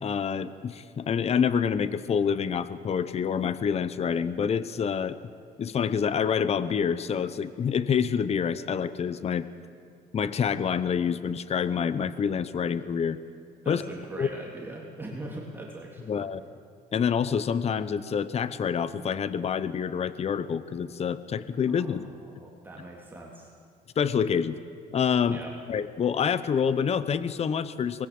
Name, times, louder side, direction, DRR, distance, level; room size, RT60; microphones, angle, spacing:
voice 1, 0.0-5.2 5.6-9.5 10.1-13.2 13.7-13.8 14.2-14.3 16.1-16.4 16.9-22.1 24.0-24.6 24.9-25.4 25.7-28.1, left 7 dB, 40° left, 14 dB, 0.9 m, -27 dB
voice 2, 13.6-16.5 21.6-23.5 25.3-25.6, right 1 dB, 10° right, -3 dB, 3.4 m, -41 dB
24.5 x 21.0 x 7.9 m, 2.3 s
cardioid pair, 110°, 17 cm